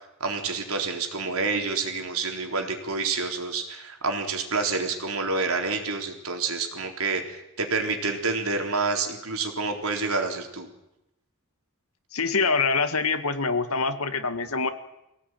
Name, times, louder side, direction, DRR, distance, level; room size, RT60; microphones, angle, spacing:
voice 1, 0.2-10.7, right 4 dB, 85° right, 3 dB, 3.9 m, -28 dB
voice 2, 12.1-14.7, left 4 dB, 90° left, 9 dB, 1.9 m, -25 dB
24.0 x 17.5 x 9.2 m, 0.89 s
head